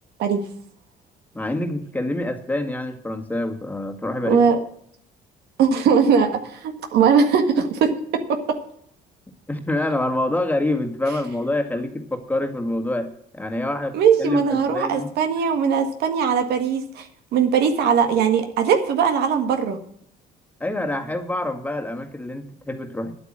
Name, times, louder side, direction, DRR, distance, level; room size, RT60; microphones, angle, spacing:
voice 1, 1.3-4.4 9.5-15.1 20.6-23.1, left 1 dB, 10° left, 5 dB, 1.8 m, -26 dB
voice 2, 4.2-4.6 5.6-7.9 13.9-17.1 17.3-19.8, right 6 dB, 75° right, 6 dB, 1.8 m, -19 dB
10.5 x 8.4 x 7.5 m, 0.65 s
cardioid pair, 110°, 17 cm